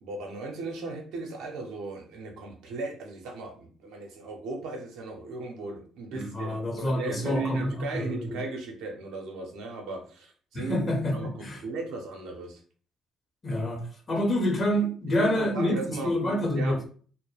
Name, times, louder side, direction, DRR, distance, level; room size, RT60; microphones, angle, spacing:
voice 1, 0.0-10.8 11.1-12.6 15.2-16.1 16.5-16.9, right 3 dB, 70° right, 0.5 m, -36 dB
voice 2, 6.1-8.4 10.5-11.6 13.4-16.9, left 1 dB, 40° left, 0.8 m, -28 dB
2.2 x 2.0 x 2.9 m
hypercardioid pair, 55°, 0 cm